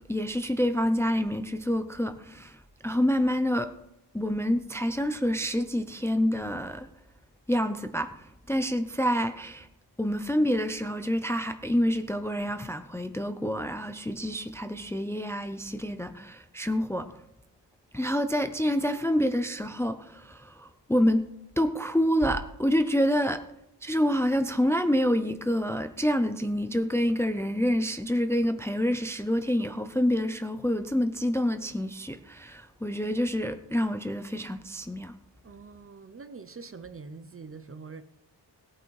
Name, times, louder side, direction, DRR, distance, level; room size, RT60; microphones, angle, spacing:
voice 1, 0.1-3.7 4.1-6.9 7.5-8.1 8.5-9.7 10.0-17.1 17.9-21.3 21.6-23.4 23.8-35.1, equal, 5° left, 0.5 m, -27 dB
voice 2, 35.4-38.0, right 4 dB, 30° right, 0.7 m, -44 dB
18.0 x 8.9 x 4.7 m
wide cardioid pair, 170°, 44 cm